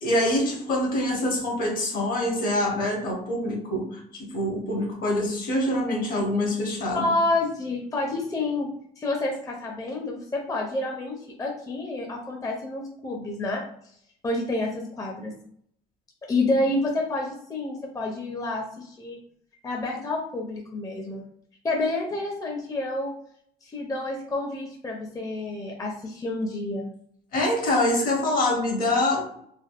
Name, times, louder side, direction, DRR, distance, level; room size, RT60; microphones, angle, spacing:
voice 1, 0.0-7.1 27.3-29.3, left 1 dB, 60° left, 1 dB, 1.0 m, -25 dB
voice 2, 6.9-8.7 9.0-13.6 14.2-15.4 16.3-19.2 19.6-21.2 21.6-23.1 23.6-26.9, left 2 dB, 20° left, 0 dB, 0.5 m, -29 dB
3.4 x 2.3 x 2.4 m, 0.67 s
cardioid pair, 110°, 17 cm